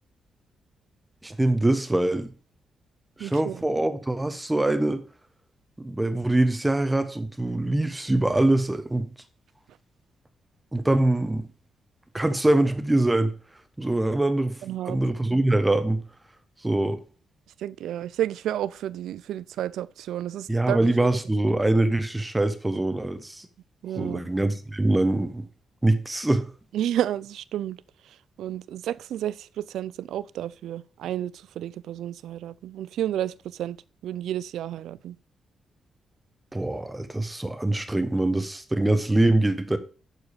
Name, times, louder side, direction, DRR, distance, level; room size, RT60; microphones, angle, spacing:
voice 1, 1.2-2.3 3.2-5.0 5.8-9.1 10.7-11.5 12.1-13.3 13.8-14.6 14.8-16.0 16.6-17.0 20.5-23.5 23.9-25.5 25.8-26.5 36.5-39.8, right 2 dB, 15° right, 1.1 m, -23 dB
voice 2, 3.2-3.6 14.6-15.0 17.6-21.1 23.8-24.3 26.7-27.8 28.4-33.8 34.0-35.2, right 11 dB, 90° right, 0.3 m, -31 dB
11.0 x 4.7 x 5.0 m
cardioid pair, 95°, 0 cm